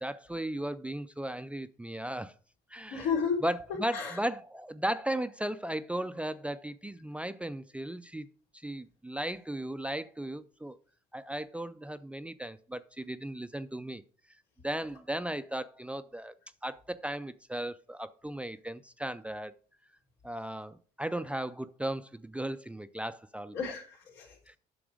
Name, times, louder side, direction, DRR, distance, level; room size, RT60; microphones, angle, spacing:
voice 1, 0.0-2.3 2.7-3.0 3.4-8.3 8.6-10.8 11.1-14.0 14.6-16.3 16.6-19.5 20.2-23.6 24.5-24.6, right 1 dB, 5° right, 0.4 m, -36 dB
voice 2, 2.9-3.4 3.9-4.2 23.5-24.4, left 6 dB, 90° left, 3.7 m, -32 dB
8.8 x 6.0 x 4.9 m
cardioid pair, 110°, 17 cm